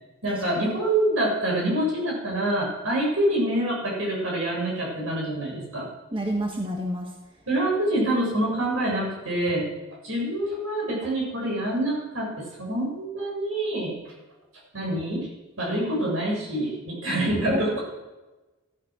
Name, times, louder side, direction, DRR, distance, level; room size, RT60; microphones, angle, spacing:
voice 1, 0.2-5.9 7.5-9.7 10.0-13.9 14.7-15.3 15.6-17.8, right 1 dB, 70° right, -2 dB, 6.9 m, -26 dB
voice 2, 6.1-7.1 17.1-17.2 17.5-17.8, equal, 25° right, 1 dB, 1.5 m, -29 dB
14.5 x 12.0 x 6.3 m, 1.1 s
head